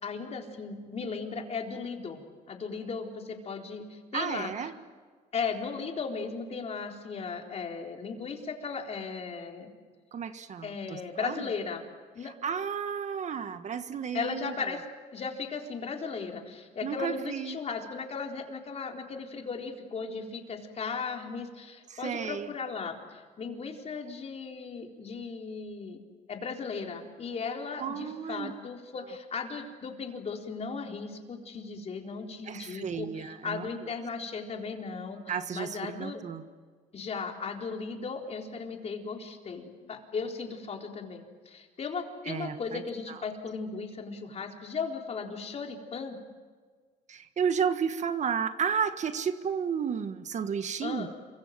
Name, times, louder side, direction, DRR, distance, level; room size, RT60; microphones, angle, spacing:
voice 1, 0.0-4.5 5.3-9.7 10.6-11.8 12.1-12.3 14.1-14.8 15.1-26.0 26.3-36.2 36.9-46.2 50.8-51.1, left 5 dB, 40° left, 2 dB, 4.1 m, -36 dB
voice 2, 4.1-4.7 10.1-11.4 12.2-14.8 16.8-17.6 21.9-22.5 27.8-28.5 32.4-33.7 35.3-36.4 42.2-42.8 43.1-43.2 47.1-51.1, right 7 dB, 45° right, 10 dB, 1.5 m, -32 dB
28.0 x 25.0 x 7.6 m, 1.5 s
cardioid pair, 110°, 17 cm